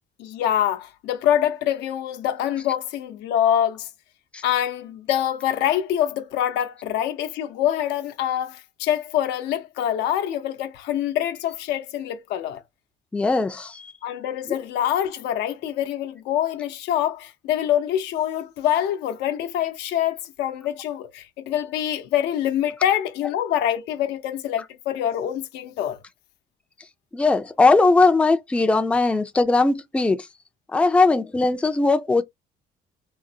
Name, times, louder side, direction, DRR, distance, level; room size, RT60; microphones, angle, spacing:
voice 1, 0.2-3.9 4.4-12.6 14.0-26.0, left 11 dB, 85° left, 0.7 m, -25 dB
voice 2, 13.1-13.9 27.1-30.3 30.7-32.2, left 3 dB, 5° left, 0.4 m, -19 dB
3.8 x 2.0 x 2.7 m
cardioid pair, 110°, 17 cm